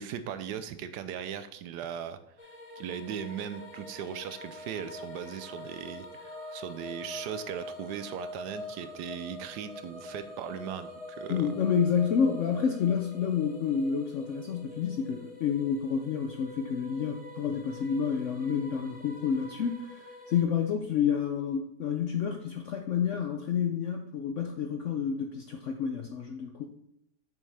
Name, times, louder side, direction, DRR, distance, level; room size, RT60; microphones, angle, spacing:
voice 1, 0.0-2.2 2.8-11.6, right 8 dB, 75° right, 11 dB, 1.1 m, -38 dB
sound 1, 2.4-20.4, left 2 dB, 30° left, 0.7 m, -45 dB
voice 2, 11.3-26.7, left 7 dB, 70° left, 4 dB, 0.7 m, -29 dB
7.1 x 6.4 x 3.4 m, 0.75 s
omnidirectional pair, 1.9 m